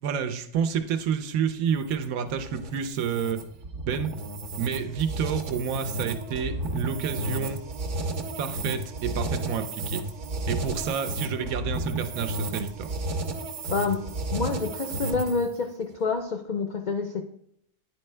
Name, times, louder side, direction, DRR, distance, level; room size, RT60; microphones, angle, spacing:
voice 1, 0.0-3.4 3.8-4.1 4.6-7.6 8.4-10.0 10.5-12.9, right 7 dB, 85° right, 9 dB, 1.1 m, -29 dB
sound 1, 1.7-15.5, right 2 dB, 60° right, 1.0 m, -33 dB
voice 2, 13.7-17.2, left 4 dB, 70° left, 4 dB, 0.4 m, -28 dB
9.6 x 4.4 x 3.2 m, 0.74 s
omnidirectional pair, 1.5 m